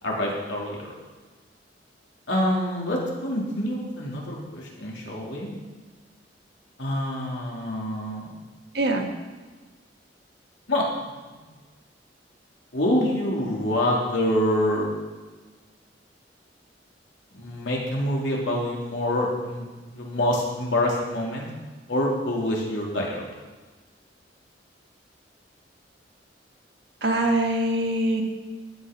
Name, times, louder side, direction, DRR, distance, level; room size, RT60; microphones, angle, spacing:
voice 1, 0.0-0.9 2.3-5.5 6.8-8.3 10.7-10.9 12.7-14.9 17.3-19.7 19.9-21.5 21.9-23.4, left 1 dB, 85° left, -3 dB, 3.1 m, -26 dB
voice 2, 8.7-9.1 27.0-28.2, right 1 dB, 60° right, 2 dB, 1.6 m, -23 dB
12.5 x 9.0 x 5.3 m, 1.3 s
head